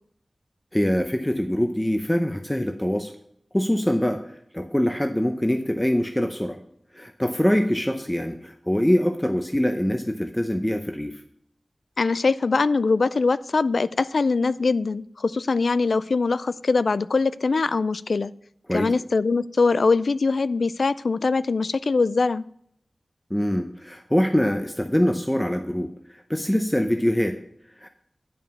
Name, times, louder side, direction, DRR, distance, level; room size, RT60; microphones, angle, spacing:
voice 1, 0.7-3.1 3.5-4.3 4.5-6.6 6.9-11.2 18.7-18.9 23.3-27.4 27.8-27.9, equal, 10° left, 5 dB, 0.7 m, -24 dB
voice 2, 12.0-18.3 18.7-22.4, left 4 dB, 75° left, 17 dB, 0.3 m, -22 dB
9.2 x 5.4 x 6.8 m, 0.70 s
wide cardioid pair, 85°, 0 cm